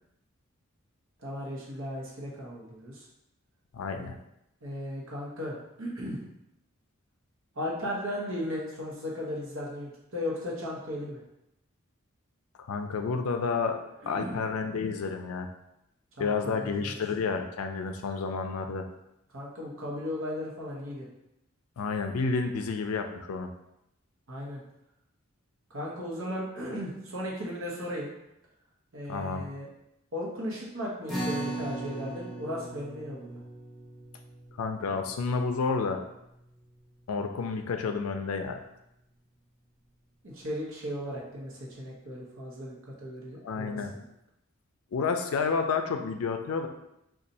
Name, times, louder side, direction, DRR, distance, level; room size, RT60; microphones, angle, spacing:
voice 1, 1.2-3.1 4.6-6.2 7.5-11.2 14.0-14.4 16.2-17.0 19.3-21.1 24.3-24.6 25.7-28.1 28.9-29.7 30.1-33.4 40.2-44.0, left 1 dB, 65° right, -3 dB, 0.9 m, -36 dB
voice 2, 3.7-4.2 12.6-13.8 14.1-15.5 16.2-18.9 21.8-23.5 29.1-29.4 34.6-36.0 37.1-38.6 43.4-43.9 44.9-46.7, left 4 dB, 85° left, 6 dB, 0.4 m, -30 dB
sound 1, 31.1-37.7, right 2 dB, ahead, 0.8 m, -40 dB
2.6 x 2.4 x 4.0 m, 0.84 s
head